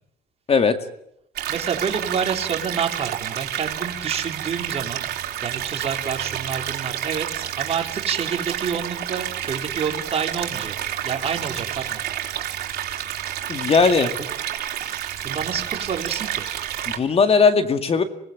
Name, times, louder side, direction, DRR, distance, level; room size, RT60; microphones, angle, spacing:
sound 1, 1.4-17.0, right 11 dB, 65° right, 4.0 m, -29 dB
voice 1, 1.5-5.1 5.4-10.7 11.0-12.0 14.0-14.1 15.2-16.5, right 6 dB, 35° right, 2 dB, 4.0 m, -28 dB
voice 2, 13.5-14.1 16.9-18.0, left 5 dB, 35° left, 8 dB, 2.2 m, -18 dB
26.0 x 19.5 x 9.2 m, 0.78 s
cardioid pair, 110°, 17 cm